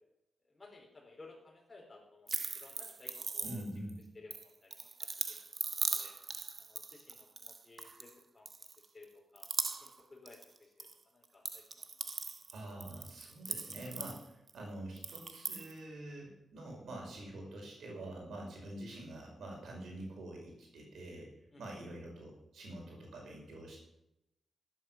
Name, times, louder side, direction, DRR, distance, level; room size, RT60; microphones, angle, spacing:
voice 1, 0.5-3.6 4.1-4.9 5.3-5.4 6.0-6.1 6.6-8.5 8.8-10.9 11.1-11.6 12.0-12.1 21.5-21.6, left 3 dB, 25° left, -3 dB, 4.3 m, -57 dB
sound 1, 2.3-3.9 4.3-8.1 8.5-9.0 9.4-10.9 11.2-14.5 15.0-15.7, right 4 dB, 45° right, 1.1 m, -40 dB
voice 2, 3.4-4.0 12.5-21.3 21.6-23.8, right 1 dB, 80° right, 0 dB, 5.2 m, -46 dB
13.0 x 9.0 x 7.4 m, 0.84 s
cardioid pair, 85°, 0 cm